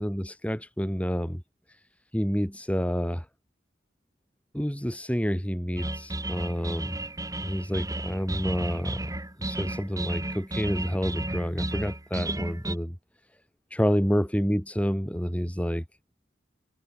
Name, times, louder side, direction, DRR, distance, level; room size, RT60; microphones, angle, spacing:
voice 1, 0.0-1.4 2.1-3.3 4.5-7.0 7.4-9.1 9.4-13.0 13.7-15.8, equal, 5° left, 7.5 m, -28 dB
sound 1, 5.8-12.7, right 1 dB, 20° right, 5.3 m, -33 dB
head